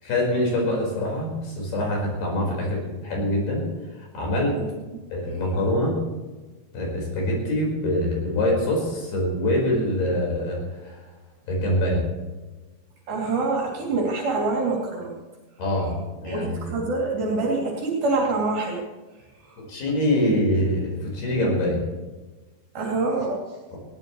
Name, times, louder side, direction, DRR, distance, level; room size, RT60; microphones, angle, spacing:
voice 1, 0.0-3.6 4.0-4.6 5.1-5.9 6.7-11.0 11.5-12.0 15.6-15.9 16.2-16.8 19.6-21.8 23.7-23.8, left 1 dB, 75° left, -1 dB, 6.8 m, -24 dB
voice 2, 4.5-5.0 13.1-15.1 16.3-18.8 22.7-23.4, right 3 dB, 65° right, -3 dB, 4.7 m, -25 dB
20.0 x 17.5 x 3.2 m, 1.2 s
omnidirectional pair, 4.6 m